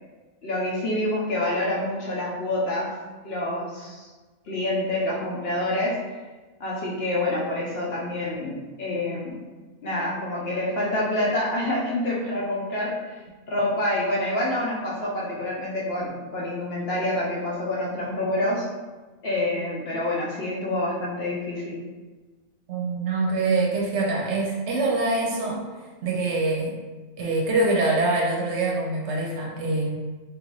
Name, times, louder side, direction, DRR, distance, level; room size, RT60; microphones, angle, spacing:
voice 1, 0.4-3.0 3.2-4.1 4.5-6.2 6.6-9.4 9.8-13.2 13.5-18.7 19.2-21.8, left 1 dB, 60° left, -4 dB, 0.8 m, -27 dB
voice 2, 22.7-25.6 26.0-26.8 27.2-30.0, right 2 dB, 65° right, -2 dB, 0.8 m, -24 dB
3.1 x 2.5 x 3.0 m, 1.3 s
omnidirectional pair, 1.4 m